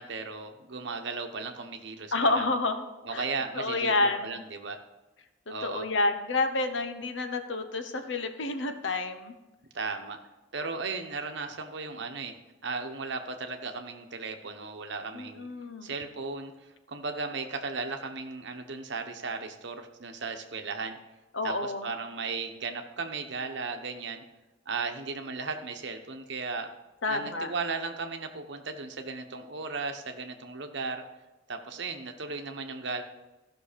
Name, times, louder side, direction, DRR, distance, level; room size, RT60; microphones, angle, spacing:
voice 1, 0.0-2.5 3.0-4.8 5.5-5.8 9.7-10.2 10.5-12.3 12.6-15.5 15.8-16.5 16.9-21.0 21.4-24.2 24.7-26.7 27.1-31.0 31.5-33.0, right 4 dB, 60° right, 6 dB, 1.0 m, -36 dB
voice 2, 2.1-2.9 3.1-3.2 3.5-4.4 5.5-9.3 15.1-15.9 21.3-21.9 27.0-27.5, left 2 dB, 65° left, 8 dB, 0.9 m, -29 dB
14.0 x 6.2 x 5.1 m, 1.1 s
head